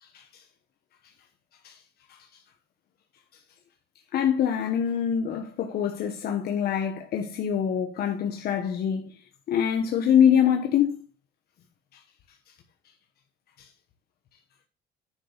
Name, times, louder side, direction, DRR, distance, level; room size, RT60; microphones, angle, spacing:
voice 1, 0.0-0.4 1.6-1.8 2.1-2.2 4.1-9.2 9.5-11.0 13.6-13.7, left 8 dB, 65° left, 1.2 m, -25 dB
10.0 x 6.2 x 4.0 m
cardioid pair, 115°, 18 cm